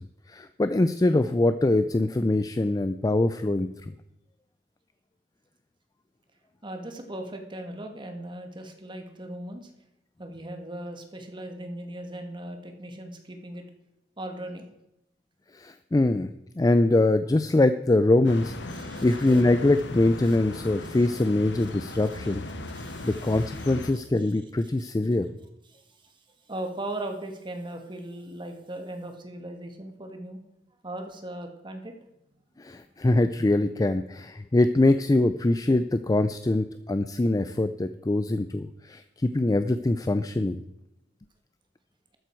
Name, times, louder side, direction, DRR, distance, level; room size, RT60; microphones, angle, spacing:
voice 1, 0.3-3.7 15.5-22.4 23.0-25.3 32.6-40.6, left 2 dB, 20° left, 11 dB, 0.4 m, -23 dB
voice 2, 6.6-9.7 10.2-13.6 14.2-14.7 18.7-19.1 20.2-20.3 21.9-22.0 22.7-23.7 25.7-25.8 26.5-30.4 30.8-31.9, right 1 dB, 25° right, 5 dB, 1.7 m, -38 dB
sound 1, 18.2-23.9, left 2 dB, 80° left, 1.2 m, -38 dB
13.0 x 9.3 x 4.6 m, 0.86 s
head